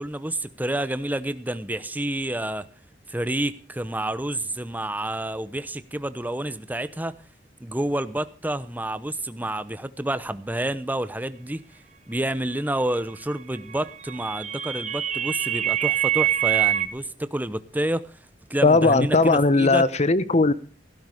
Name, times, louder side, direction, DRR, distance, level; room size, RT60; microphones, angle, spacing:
voice 1, 0.0-2.7 3.1-7.2 7.6-11.6 12.1-18.1 18.5-19.8, right 1 dB, 10° right, 0.8 m, -29 dB
sound 1, 13.7-16.9, right 12 dB, 40° right, 1.2 m, -25 dB
voice 2, 18.6-20.5, left 3 dB, 40° left, 0.9 m, -18 dB
16.5 x 12.5 x 5.0 m
head